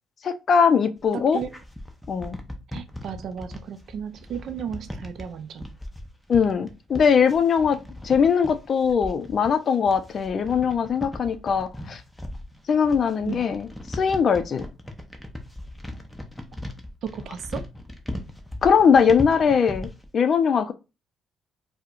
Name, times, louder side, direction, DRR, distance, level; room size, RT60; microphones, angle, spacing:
voice 1, 0.2-1.4 2.1-2.4 6.3-7.8 8.0-12.0 12.7-14.6 18.6-20.7, left 6 dB, 50° left, 0.4 m, -21 dB
sound 1, 1.0-20.1, left 1 dB, 5° left, 0.6 m, -38 dB
voice 2, 1.1-1.5 2.7-5.7 13.2-13.5 17.0-17.6, right 7 dB, 65° right, 0.4 m, -34 dB
4.4 x 2.1 x 2.4 m
cardioid pair, 100°, 0 cm